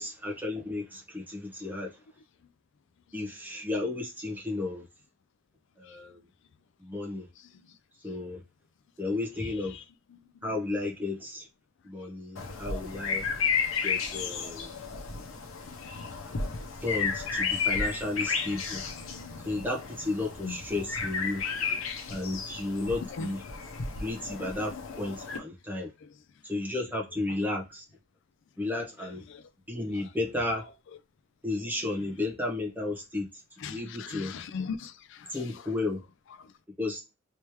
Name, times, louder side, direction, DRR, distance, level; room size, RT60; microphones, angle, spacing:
voice 1, 0.0-2.0 3.1-4.8 5.8-6.2 6.8-7.3 8.0-8.4 9.0-9.7 10.4-11.5 11.8-13.2 13.8-14.7 16.8-18.8 19.4-21.4 22.1-23.4 24.0-25.9 26.4-27.8 28.6-29.2 29.7-30.7 31.4-33.3 33.7-34.3 35.3-36.0 36.8-37.0, left 2 dB, 10° right, 1.1 m, -33 dB
voice 2, 7.4-7.7 9.4-9.8 10.1-10.5 20.4-20.6 21.3-21.4 21.7-21.8 23.1-23.3 26.0-26.1 29.0-29.5 29.9-30.1 33.6-35.7 36.4-36.5, left 5 dB, 65° left, 0.4 m, -41 dB
sound 1, 12.3-25.4, left 5 dB, 80° left, 0.9 m, -33 dB
3.2 x 3.1 x 3.0 m
head